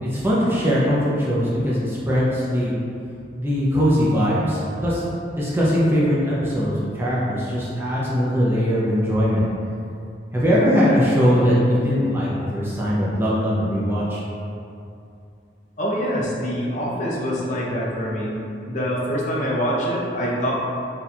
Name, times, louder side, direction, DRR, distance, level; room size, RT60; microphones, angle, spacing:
voice 1, 0.0-2.7 3.4-5.0 5.4-9.5 10.3-14.2, equal, 15° right, -7 dB, 0.5 m, -20 dB
voice 2, 15.8-18.4 18.7-20.5, equal, 45° left, -6 dB, 0.6 m, -25 dB
2.8 x 2.3 x 4.0 m, 2.5 s
head